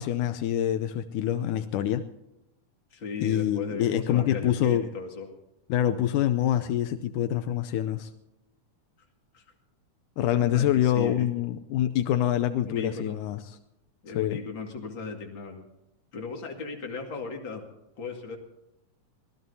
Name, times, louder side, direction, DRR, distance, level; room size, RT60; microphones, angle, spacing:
voice 1, 0.0-2.1 3.2-4.9 5.7-8.1 10.2-13.6 14.2-14.4, left 11 dB, 85° left, 9 dB, 2.2 m, -26 dB
voice 2, 2.9-5.3 9.3-9.4 10.4-11.3 12.6-13.2 14.0-15.6 16.1-17.6 18.0-18.4, left 4 dB, 40° left, 2 dB, 2.6 m, -36 dB
25.0 x 17.5 x 2.8 m, 0.91 s
omnidirectional pair, 3.6 m